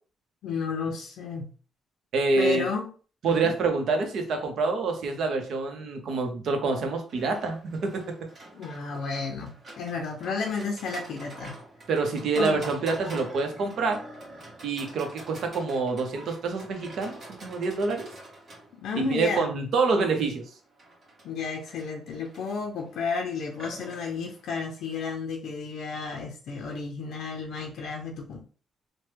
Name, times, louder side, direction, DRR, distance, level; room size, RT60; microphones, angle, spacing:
voice 1, 0.4-1.5 2.4-2.9 3.2-3.5 8.5-11.6 12.4-12.6 18.7-19.5 21.2-28.4, left 5 dB, 75° left, 1 dB, 0.5 m, -32 dB
voice 2, 2.1-2.7 3.2-8.0 11.9-14.0 14.6-18.1 18.9-20.4, right 4 dB, 70° right, 5 dB, 0.7 m, -27 dB
Livestock farm animals working animals, 7.1-25.1, right 1 dB, 40° right, 1.4 m, -46 dB
3.0 x 2.1 x 3.2 m, 0.40 s
cardioid pair, 90°, 0 cm